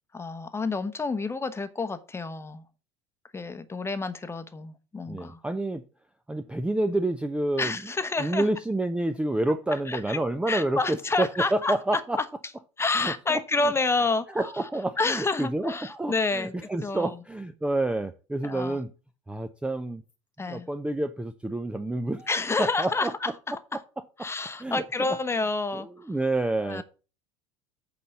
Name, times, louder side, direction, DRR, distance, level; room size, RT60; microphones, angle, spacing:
voice 1, 0.1-2.6 3.3-5.4 7.6-8.5 9.9-10.2 10.5-11.7 12.8-14.3 15.0-16.5 16.8-17.1 18.4-18.8 20.4-20.7 22.3-23.3 24.2-26.1 26.6-26.8, left 3 dB, 15° left, 1.0 m, -29 dB
voice 2, 5.1-5.8 6.3-7.8 8.2-12.2 12.9-13.4 14.3-18.9 19.3-20.0 20.4-22.3 22.6-23.3 24.2-24.3 24.6-24.8 25.7-26.8, right 2 dB, 5° right, 0.6 m, -28 dB
8.4 x 4.1 x 6.9 m
hypercardioid pair, 75°, 17 cm